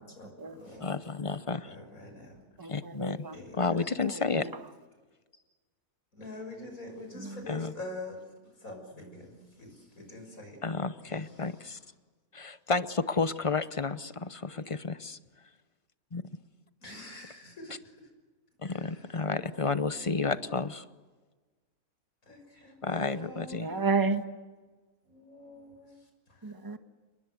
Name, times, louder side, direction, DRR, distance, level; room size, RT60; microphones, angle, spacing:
voice 1, 0.0-1.0 1.6-2.7 3.3-3.5 6.2-8.2 8.6-10.6 16.8-17.8 18.7-18.9 22.3-23.7 25.8-26.0, left 2 dB, 60° left, 6.8 m, -45 dB
voice 2, 0.8-1.8 2.7-3.3 3.5-4.5 7.5-7.7 10.6-11.8 12.3-15.2 16.1-16.2 18.6-20.9 22.8-23.7, left 4 dB, 30° left, 0.6 m, -31 dB
voice 3, 2.6-3.4 4.0-4.5 7.1-7.4 23.6-24.2 26.4-26.8, right 4 dB, 15° right, 1.4 m, -32 dB
30.0 x 20.5 x 8.1 m
omnidirectional pair, 1.6 m